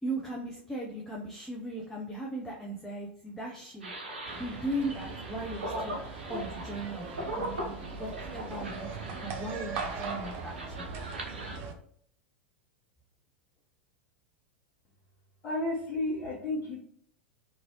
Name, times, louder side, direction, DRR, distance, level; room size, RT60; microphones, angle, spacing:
voice 1, 0.0-3.9 4.4-6.0 6.3-8.9 9.2-10.9, right 1 dB, 5° left, -3 dB, 0.6 m, -38 dB
chicken and wind chimes, 3.8-11.6, right 1 dB, 80° right, 0.8 m, -40 dB
sound 1, 4.3-11.7, right 5 dB, 40° right, 0.5 m, -40 dB
voice 2, 15.4-16.8, left 2 dB, 35° left, -8 dB, 1.1 m, -32 dB
2.9 x 2.6 x 2.8 m, 0.64 s
figure-of-eight pair, 90°, 6 cm